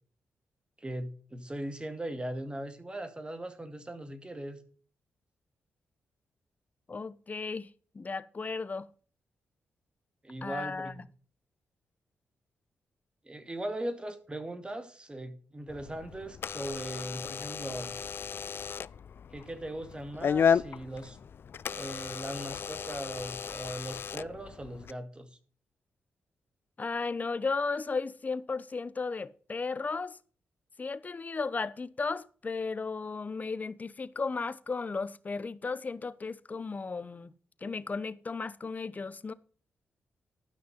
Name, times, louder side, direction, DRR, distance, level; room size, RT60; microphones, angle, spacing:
voice 1, 0.8-4.6 10.2-11.0 13.2-18.0 19.3-21.2 21.7-25.4, right 1 dB, 20° right, 2.3 m, -39 dB
voice 2, 6.9-7.7 7.9-8.9 10.4-10.9 26.8-30.2 30.8-37.3 37.6-39.3, left 4 dB, 35° left, 0.8 m, -35 dB
Door / Alarm, 15.7-24.9, left 7 dB, 55° left, 0.4 m, -34 dB
12.5 x 6.0 x 5.4 m
cardioid pair, 60°, 4 cm